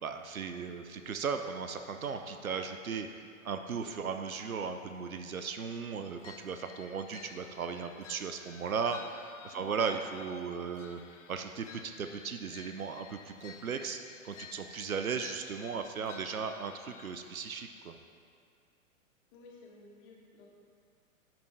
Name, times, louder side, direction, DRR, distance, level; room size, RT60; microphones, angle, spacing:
voice 1, 0.0-3.1 3.4-11.0 11.3-14.0 14.2-17.9, right 5 dB, 85° right, 7 dB, 0.6 m, -36 dB
sound 1, 6.2-17.6, left 6 dB, 60° left, 0.7 m, -53 dB
voice 2, 19.3-20.5, left 3 dB, 40° left, -2 dB, 1.9 m, -54 dB
12.0 x 6.1 x 3.3 m, 2.3 s
figure-of-eight pair, 105°, 41 cm